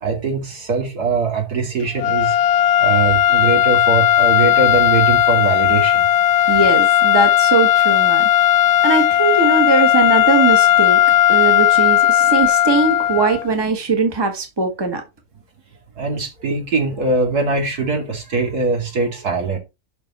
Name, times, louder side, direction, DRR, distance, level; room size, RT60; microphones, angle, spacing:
voice 1, 0.0-2.4 2.8-6.1 16.0-19.6, right 4 dB, 70° right, 3.0 m, -21 dB
sound 1, 2.0-13.5, left 12 dB, 75° left, 1.1 m, -15 dB
voice 2, 6.5-8.3 8.8-11.0 11.3-15.0, right 4 dB, 15° right, 1.5 m, -20 dB
11.5 x 4.2 x 4.2 m
omnidirectional pair, 1.7 m